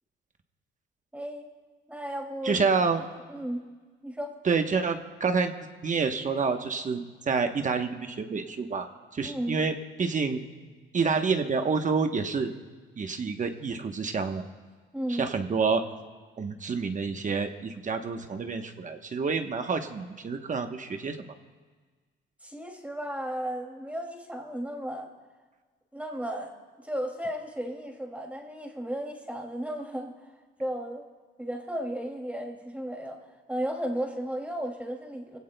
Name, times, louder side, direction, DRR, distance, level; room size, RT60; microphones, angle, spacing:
voice 1, 1.1-1.5 1.9-2.6 3.0-3.6 4.0-4.4 9.2-9.6 14.9-15.3 22.4-25.1 25.9-30.3 30.6-31.1 31.4-35.4, equal, 5° right, 1 dB, 2.5 m, -34 dB
voice 2, 2.4-3.0 4.4-5.5 5.8-10.4 10.9-12.5 13.0-14.4 15.2-15.8 16.4-21.2, right 5 dB, 40° right, 6 dB, 1.0 m, -28 dB
22.0 x 17.0 x 2.2 m, 1.4 s
cardioid pair, 90°, 20 cm